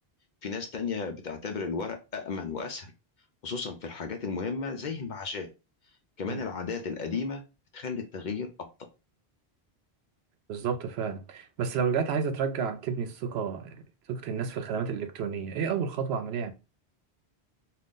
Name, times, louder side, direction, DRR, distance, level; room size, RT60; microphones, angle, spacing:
voice 1, 0.4-2.9 3.4-5.5 6.2-7.4 7.7-8.5, left 5 dB, 55° left, 0.6 m, -34 dB
voice 2, 10.5-16.5, right 6 dB, 80° right, 0.8 m, -31 dB
2.5 x 2.4 x 3.5 m
omnidirectional pair, 1.1 m